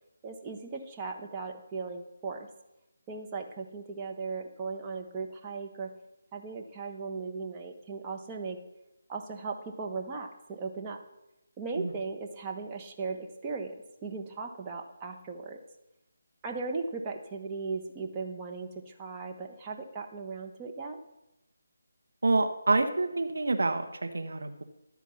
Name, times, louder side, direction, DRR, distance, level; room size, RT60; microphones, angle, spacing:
voice 1, 0.2-2.5 3.1-5.9 6.3-8.6 9.1-11.0 11.6-13.7 14.0-15.6 16.4-21.0, right 4 dB, 20° right, 1 dB, 1.1 m, -37 dB
voice 2, 22.2-24.6, right 3 dB, 70° right, 6 dB, 1.3 m, -27 dB
13.0 x 4.6 x 7.0 m, 0.94 s
figure-of-eight pair, 160°, 0 cm